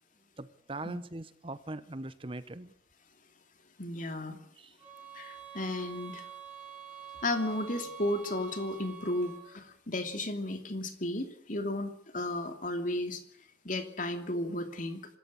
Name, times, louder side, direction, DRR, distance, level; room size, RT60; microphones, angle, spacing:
voice 1, 0.4-2.7 4.6-4.7, right 2 dB, 30° right, 14 dB, 0.9 m, -41 dB
voice 2, 3.8-4.4 5.1-6.2 7.2-13.2 13.6-15.0, left 1 dB, 45° left, 7 dB, 2.9 m, -34 dB
sound 1, 4.8-9.6, right 8 dB, 10° right, 5.7 m, -46 dB
25.5 x 14.0 x 8.6 m, 0.65 s
head